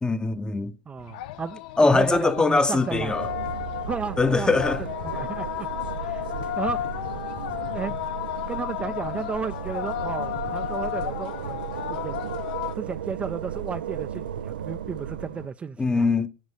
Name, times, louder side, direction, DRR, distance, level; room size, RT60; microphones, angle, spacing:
voice 1, 0.0-0.7 1.8-3.3 4.2-4.8 15.8-16.3, left 3 dB, 15° left, 0.9 m, -22 dB
voice 2, 0.9-3.1 3.9-5.7 6.0-6.9 7.7-7.9 8.5-12.2 12.8-16.1, right 6 dB, 25° right, 0.5 m, -33 dB
sound 1, 1.0-12.7, left 13 dB, 65° left, 0.5 m, -33 dB
sound 2, 2.9-15.5, right 9 dB, 80° right, 0.4 m, -35 dB
7.5 x 5.2 x 7.2 m
hypercardioid pair, 75°, 5 cm